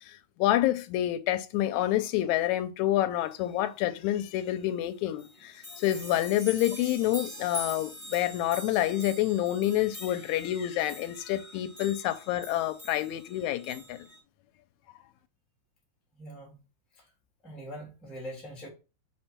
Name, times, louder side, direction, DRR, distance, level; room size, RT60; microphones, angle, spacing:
voice 1, 0.1-14.1, left 13 dB, 80° left, 2.0 m, -28 dB
sound 1, 4.8-4.9 5.2-14.2, left 1 dB, 15° right, 2.4 m, -44 dB
voice 2, 16.1-16.6 16.9-17.1 17.4-18.7, equal, ahead, 2.0 m, -42 dB
5.0 x 4.4 x 4.4 m
omnidirectional pair, 3.5 m